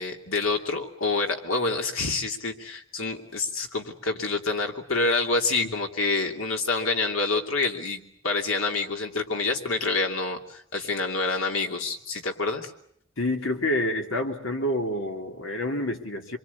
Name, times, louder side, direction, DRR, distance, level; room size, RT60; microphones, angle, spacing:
voice 1, 0.0-12.7, left 3 dB, 85° left, 3 dB, 2.9 m, -27 dB
voice 2, 13.2-16.4, left 1 dB, 70° left, 3 dB, 3.0 m, -28 dB
26.0 x 24.0 x 8.4 m, 0.67 s
head